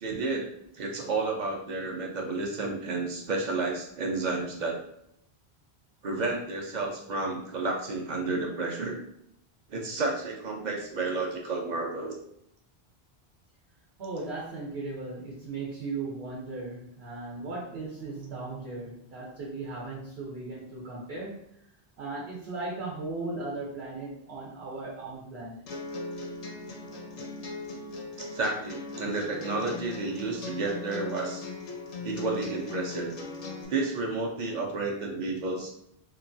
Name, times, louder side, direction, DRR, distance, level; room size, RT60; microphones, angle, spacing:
voice 1, 0.0-4.8 6.0-9.0 9.7-12.2 28.2-31.4 32.0-33.1 33.7-35.7, right 3 dB, 55° right, 0 dB, 0.6 m, -31 dB
voice 2, 14.0-21.4 22.0-25.6, right 3 dB, 80° right, -5 dB, 0.9 m, -37 dB
sound 1, 25.7-33.7, left 3 dB, 55° left, 0.4 m, -39 dB
2.9 x 2.3 x 2.5 m, 0.75 s
omnidirectional pair, 1.0 m